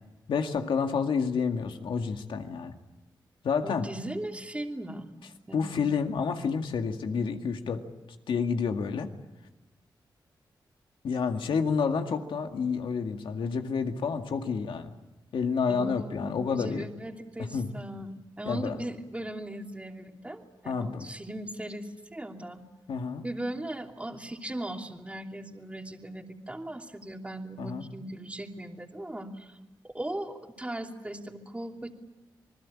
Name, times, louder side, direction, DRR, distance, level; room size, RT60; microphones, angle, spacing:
voice 1, 0.3-2.7 3.4-3.9 5.5-7.8 8.3-9.1 11.0-14.9 15.3-16.9 17.5-17.7 18.5-18.8 20.7-21.1 22.9-23.2 27.6-27.8, left 5 dB, 85° left, 5 dB, 2.1 m, -29 dB
voice 2, 3.6-5.1 5.5-5.9 15.7-22.6 23.2-29.6 29.8-31.9, right 1 dB, 15° right, 3 dB, 2.9 m, -38 dB
28.0 x 20.0 x 8.7 m, 1.1 s
cardioid pair, 65°, 8 cm